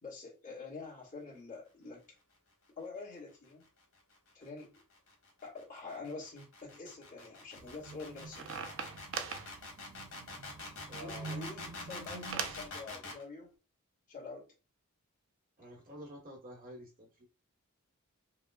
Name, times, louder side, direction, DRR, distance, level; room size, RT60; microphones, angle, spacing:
voice 1, 0.0-2.0 2.8-3.7 4.3-4.8 5.4-8.6 11.0-13.5 14.1-14.4, left 3 dB, 40° left, -5 dB, 1.6 m, -46 dB
sound 1, 4.0-13.2, left 2 dB, 80° left, 1.6 m, -46 dB
sound 2, 7.6-12.7, right 6 dB, 65° right, 0.5 m, -43 dB
voice 2, 10.9-11.5 15.6-17.3, equal, 40° right, 0 dB, 1.2 m, -50 dB
4.9 x 2.3 x 2.3 m, 0.33 s
head